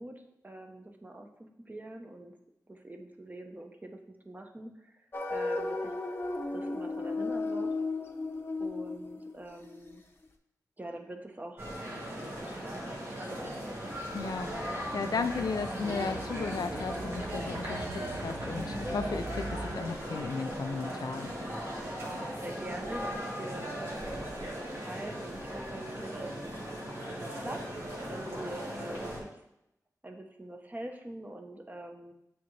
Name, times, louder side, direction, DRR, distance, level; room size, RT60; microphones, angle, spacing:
voice 1, 0.0-2.4 2.7-4.0 4.2-5.9 6.5-7.8 8.6-10.0 10.8-11.7 12.2-13.5 21.8-26.3 26.7-27.6 28.1-29.4 30.0-32.1, right 1 dB, 25° right, 4 dB, 0.7 m, -44 dB
sound 1, 5.1-10.0, left 3 dB, 35° left, 0.6 m, -34 dB
sound 2, 11.6-29.2, equal, 40° right, 1.8 m, -38 dB
sound 3, 13.2-19.9, right 2 dB, 65° right, 0.9 m, -45 dB
voice 2, 14.1-21.3, left 4 dB, 90° left, 9 dB, 0.4 m, -35 dB
8.5 x 3.6 x 3.2 m, 0.84 s
wide cardioid pair, 95°, 7 cm